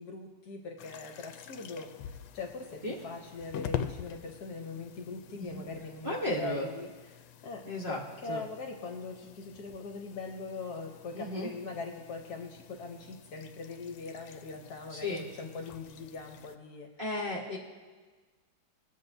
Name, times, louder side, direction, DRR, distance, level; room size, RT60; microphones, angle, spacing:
voice 1, 0.0-6.9 7.4-16.9, left 4 dB, 60° left, 3 dB, 1.3 m, -41 dB
sound 1, 0.8-16.6, left 9 dB, 80° left, 1.3 m, -45 dB
voice 2, 5.3-5.6 6.0-6.7 7.6-8.4 11.1-11.5 14.9-15.2 17.0-17.6, left 1 dB, 35° right, -3 dB, 1.1 m, -34 dB
21.5 x 7.4 x 2.7 m, 1.4 s
omnidirectional pair, 2.1 m